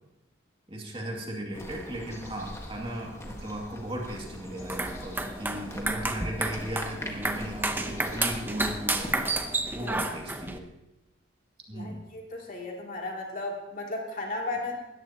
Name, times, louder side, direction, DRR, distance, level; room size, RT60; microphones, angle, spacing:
voice 1, 0.7-10.6 11.7-12.1, right 1 dB, 30° right, -1 dB, 2.3 m, -36 dB
sound 1, 1.5-9.5, left 1 dB, 15° left, 1.5 m, -43 dB
sound 2, 4.6-10.6, right 2 dB, 10° right, 0.8 m, -31 dB
voice 2, 11.7-14.8, left 2 dB, 45° left, -1 dB, 2.7 m, -35 dB
19.5 x 14.0 x 2.9 m, 0.97 s
head